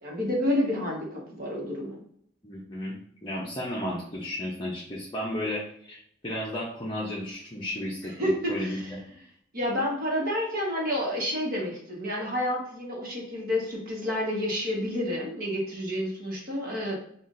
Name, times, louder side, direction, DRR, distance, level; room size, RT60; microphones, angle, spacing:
voice 1, 0.0-2.0 8.2-8.9 9.5-16.9, left 1 dB, 50° right, -2 dB, 1.2 m, -29 dB
voice 2, 2.4-2.9 3.2-8.1 8.5-9.0, left 1 dB, 25° left, -5 dB, 0.7 m, -33 dB
5.7 x 2.4 x 2.5 m, 0.66 s
head